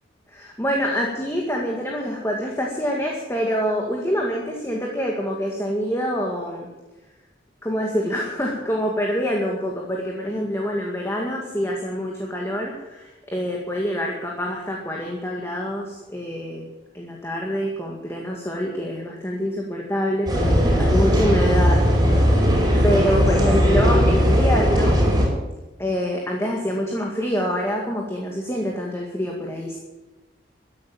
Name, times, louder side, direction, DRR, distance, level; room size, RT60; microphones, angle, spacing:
voice 1, 0.3-6.7 7.6-16.7 16.9-21.8 22.8-24.9 25.8-29.8, equal, 15° left, -1 dB, 2.1 m, -26 dB
sound 1, 20.3-25.3, equal, 20° right, 5.5 m, -18 dB
14.5 x 10.5 x 9.1 m, 1.1 s
head